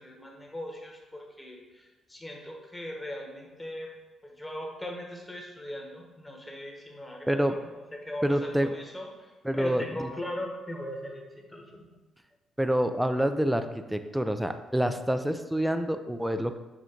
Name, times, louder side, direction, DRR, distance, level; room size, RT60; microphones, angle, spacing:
voice 1, 0.0-3.9 4.2-11.9, left 1 dB, 15° left, 0 dB, 1.3 m, -39 dB
voice 2, 8.2-8.7 9.4-10.1 12.6-16.6, equal, 5° right, 8 dB, 0.4 m, -27 dB
7.3 x 2.5 x 5.1 m, 1.2 s
cardioid pair, 90°, 0 cm